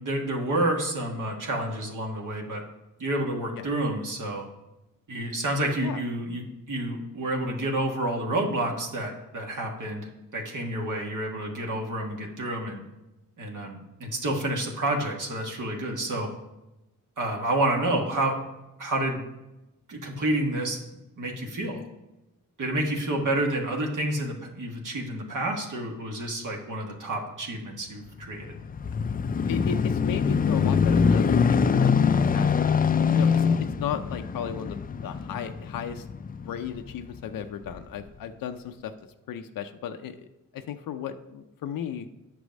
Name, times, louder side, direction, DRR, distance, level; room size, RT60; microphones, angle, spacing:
voice 1, 0.0-2.6 3.0-4.5 5.1-12.8 13.4-16.3 17.2-18.4 18.8-19.2 19.9-20.8 21.2-21.8 22.6-28.6, right 1 dB, 65° right, 0 dB, 1.6 m, -29 dB
sound 1, 28.2-37.0 37.7-37.8, left 6 dB, 25° left, 0.3 m, -24 dB
voice 2, 29.5-32.7 33.1-33.4 33.8-36.1 36.4-38.9 39.3-42.1, left 8 dB, 85° left, 7 dB, 0.5 m, -35 dB
8.2 x 6.1 x 5.2 m, 0.97 s
cardioid pair, 75°, 33 cm